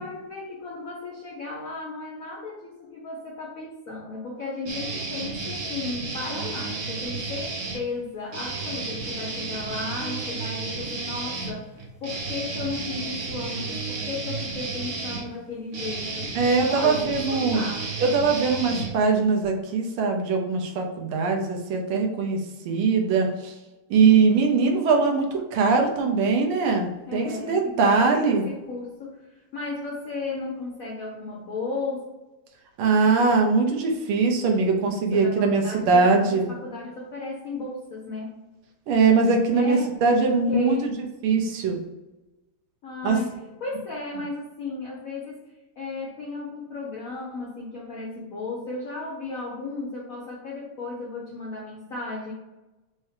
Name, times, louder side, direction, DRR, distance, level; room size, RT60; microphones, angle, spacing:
voice 1, 0.0-16.3 16.7-17.9 27.1-32.0 35.1-38.3 39.5-39.9 40.2-40.9 42.8-43.3 43.6-45.4 45.8-52.3, left 3 dB, 65° left, -3 dB, 0.8 m, -35 dB
sound 1, 4.7-7.8 8.3-19.5, right 3 dB, 60° right, 0.8 m, -32 dB
voice 2, 16.3-17.6 18.0-23.5 23.9-28.4 32.8-36.5 38.9-40.9 41.2-41.8 43.0-43.2, right 4 dB, 80° right, 2 dB, 1.6 m, -21 dB
4.5 x 2.7 x 3.3 m, 1.1 s
omnidirectional pair, 2.4 m